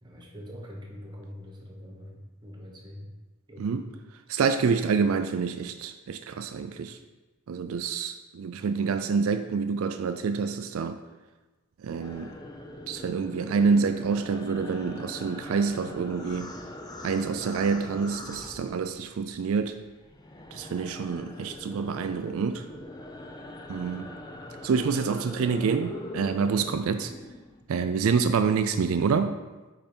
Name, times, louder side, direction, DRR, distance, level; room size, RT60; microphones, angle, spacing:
voice 1, 0.0-3.0 3.5-3.8, equal, 20° right, -1 dB, 1.0 m, -44 dB
voice 2, 4.3-7.0 7.5-11.0 11.8-12.3 12.9-16.5 17.0-19.7 20.5-22.6 23.7-24.1 24.6-27.1 27.7-29.4, right 5 dB, 70° right, 9 dB, 0.4 m, -27 dB
sound 1, 12.0-19.3 19.6-27.6, left 1 dB, 20° left, 0.4 m, -42 dB
5.4 x 4.9 x 4.4 m, 1.2 s
head